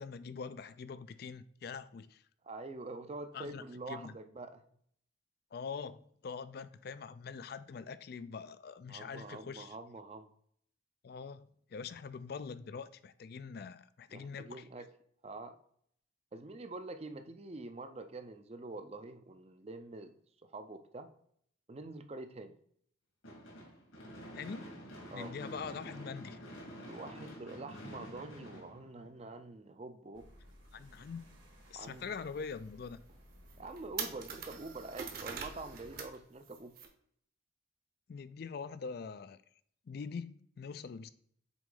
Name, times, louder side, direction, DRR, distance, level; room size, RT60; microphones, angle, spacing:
voice 1, 0.0-2.2 3.3-4.1 5.5-9.8 11.0-14.6 24.3-24.7 25.1-26.4 30.7-31.3 31.7-33.0 38.1-39.4 39.9-41.1, left 5 dB, 50° left, 0.3 m, -44 dB
voice 2, 2.4-4.6 8.9-10.3 14.1-14.9 15.2-15.6 16.3-20.1 20.4-21.1 21.7-22.5 25.1-25.4 26.9-30.3 31.7-32.1 33.6-36.8, right 2 dB, 30° right, 0.5 m, -46 dB
Gunshot gunfire / Fireworks, 23.2-29.5, equal, 85° left, 2.6 m, -48 dB
sound 1, 30.1-36.1, equal, 90° right, 2.4 m, -59 dB
sound 2, 31.8-31.9 32.4-32.5 33.1-33.2 33.5-36.2 36.4-36.9, right 6 dB, 45° right, 0.9 m, -43 dB
6.0 x 4.1 x 3.8 m
head